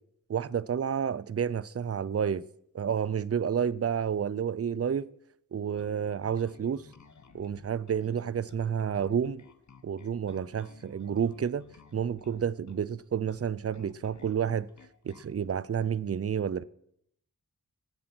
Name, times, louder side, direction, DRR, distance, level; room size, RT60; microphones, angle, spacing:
voice 1, 0.3-2.4 2.7-5.1 5.5-6.9 7.3-9.4 9.8-11.6 11.9-14.7 15.0-16.6, right 8 dB, 45° right, 0.5 m, -30 dB
Bass guitar, 5.8-15.4, left 5 dB, 55° left, 1.2 m, -56 dB
19.0 x 8.1 x 6.1 m
wide cardioid pair, 95°, 35 cm